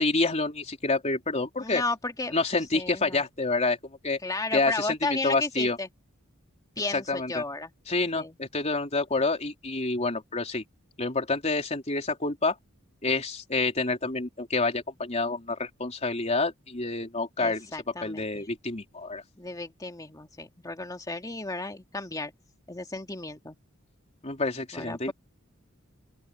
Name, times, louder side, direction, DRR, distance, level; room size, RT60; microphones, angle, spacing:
voice 1, 0.0-1.8 2.3-3.8 4.0-4.2 4.5-5.8 6.9-7.4 7.9-10.6 11.0-12.6 13.0-17.7 18.0-19.2 24.2-25.1, left 3 dB, 30° left, 3.7 m, -28 dB
voice 2, 1.6-2.4 2.7-3.2 4.2-5.9 6.8-7.7 8.1-8.4 17.4-18.5 19.4-22.3 22.7-23.6 24.7-25.1, left 2 dB, 15° left, 2.3 m, -34 dB
open air
head